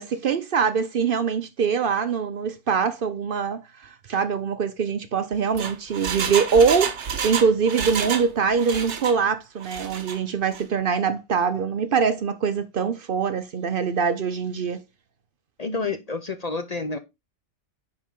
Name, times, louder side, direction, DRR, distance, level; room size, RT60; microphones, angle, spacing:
voice 1, 0.0-14.8, right 6 dB, 55° right, 0.8 m, -23 dB
Engine, 5.3-8.3 8.6-9.2 9.6-10.2 10.5-10.6, right 7 dB, 75° right, 1.2 m, -29 dB
voice 2, 15.6-17.0, left 3 dB, 40° left, 0.6 m, -29 dB
9.8 x 4.0 x 3.6 m
omnidirectional pair, 1.2 m